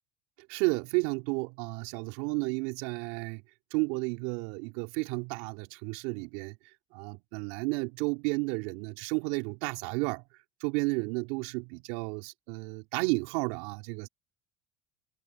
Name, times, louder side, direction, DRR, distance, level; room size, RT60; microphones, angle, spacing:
voice 1, 0.5-3.4 3.7-6.6 6.9-10.2 10.6-14.1, right 28 dB, 75° right, 3.8 m, -32 dB
hypercardioid pair, 80°, 2 cm